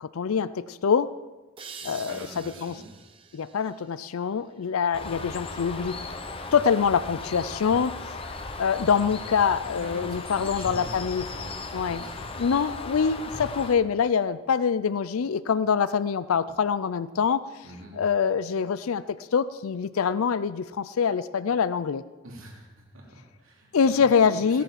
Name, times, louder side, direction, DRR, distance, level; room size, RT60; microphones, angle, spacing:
voice 1, 0.0-1.1 1.8-2.7 3.3-6.0 6.5-8.2 8.6-11.2 11.7-12.0 12.4-17.4 17.9-22.0 23.7-24.6, left 6 dB, 90° left, 15 dB, 0.4 m, -25 dB
sound 1, 1.6-5.0, right 6 dB, 25° right, 0.8 m, -47 dB
voice 2, 1.8-2.9 9.8-12.3 17.6-17.9 22.2-24.0 24.3-24.6, right 1 dB, 80° right, -1 dB, 3.1 m, -45 dB
Bird, 4.9-13.7, left 3 dB, 25° left, 0.9 m, -37 dB
16.5 x 10.5 x 5.8 m, 1.2 s
head